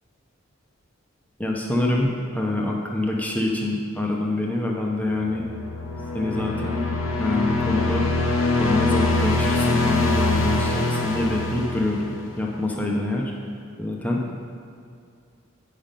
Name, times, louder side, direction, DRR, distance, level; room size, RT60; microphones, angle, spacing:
voice 1, 1.4-5.4 6.1-6.8 7.2-8.1 8.6-13.3 13.8-14.2, left 2 dB, 10° left, -1 dB, 0.8 m, -25 dB
sound 1, 5.1-12.5, left 2 dB, 75° left, 1.0 m, -24 dB
8.7 x 5.8 x 5.2 m, 2.4 s
head